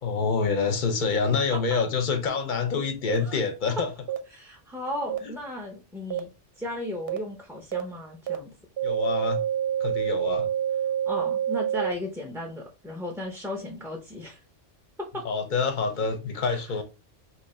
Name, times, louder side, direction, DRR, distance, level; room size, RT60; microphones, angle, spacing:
voice 1, 0.0-3.9 8.8-9.4 9.8-10.5 15.2-16.8, left 5 dB, 50° left, 0.6 m, -26 dB
sound 1, 3.1-3.2 4.1-4.2 5.1-5.2 6.1-6.2 7.1-7.2 7.7-7.8 8.3-8.4 8.8-11.9, right 10 dB, 65° right, 0.7 m, -27 dB
voice 2, 4.3-6.3 6.6-8.5 11.1-14.4 15.0-15.2 16.5-16.6, left 1 dB, 5° right, 0.3 m, -35 dB
2.8 x 2.4 x 4.1 m
omnidirectional pair, 1.2 m